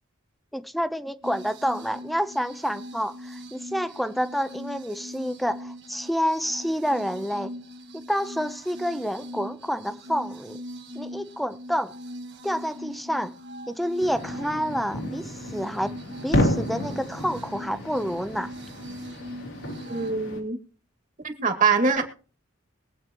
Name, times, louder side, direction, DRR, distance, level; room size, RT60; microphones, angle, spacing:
voice 1, 0.5-7.5 7.9-10.6 10.9-11.9 12.4-13.3 13.7-15.9 16.2-18.5, equal, ahead, 0.6 m, -28 dB
sound 1, 1.2-20.1, equal, 60° right, 1.7 m, -41 dB
sound 2, 14.0-20.4, left 1 dB, 80° left, 3.4 m, -31 dB
voice 2, 19.9-20.6 21.2-22.0, right 5 dB, 40° right, 2.2 m, -23 dB
22.5 x 8.4 x 3.0 m
head